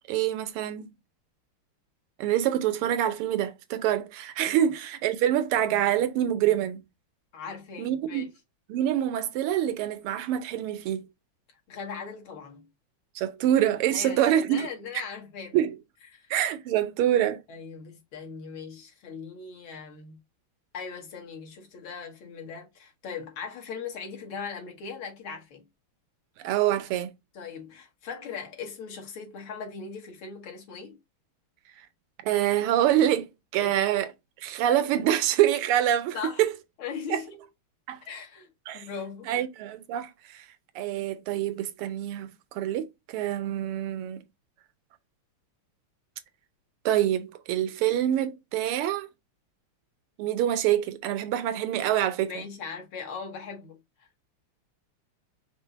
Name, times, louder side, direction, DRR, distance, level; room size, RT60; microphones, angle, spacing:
voice 1, 0.1-0.9 2.2-6.8 7.8-8.3 8.7-11.1 13.1-14.7 15.5-15.8 16.3-17.4 26.4-27.1 32.2-34.1 34.4-36.5 37.1-37.2 37.9-38.0 38.7-38.8 39.3-40.5 40.7-44.2 46.8-49.1 50.2-52.4, right 11 dB, 85° right, 1.6 m, -26 dB
voice 2, 7.3-8.3 11.7-12.7 13.9-15.6 16.1-16.3 17.5-20.2 20.7-25.7 27.3-31.0 33.6-33.8 36.1-36.4 36.8-37.5 38.0-39.3 52.3-54.1, left 5 dB, 75° left, 2.0 m, -39 dB
5.3 x 2.0 x 3.9 m
omnidirectional pair, 2.4 m